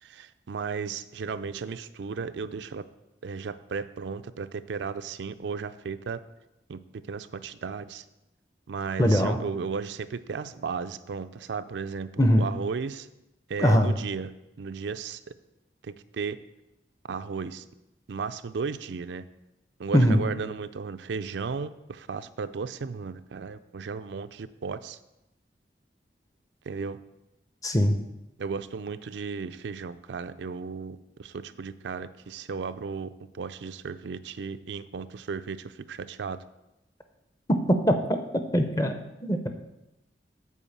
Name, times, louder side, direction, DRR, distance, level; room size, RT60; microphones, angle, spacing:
voice 1, 0.0-2.8 3.2-6.2 6.7-6.8 7.1-8.0 8.7-13.1 13.5-14.3 14.6-15.2 15.8-16.4 17.1-17.6 18.1-19.2 19.8-25.0 26.7-27.0 28.4-36.4, right 5 dB, 85° right, 11 dB, 0.4 m, -35 dB
voice 2, 9.0-9.4 12.2-12.5 13.6-14.0 19.9-20.3 27.6-27.9 37.9-38.0 38.5-39.0 39.2-39.5, equal, 20° left, 7 dB, 0.6 m, -21 dB
8.3 x 4.7 x 7.2 m, 0.94 s
head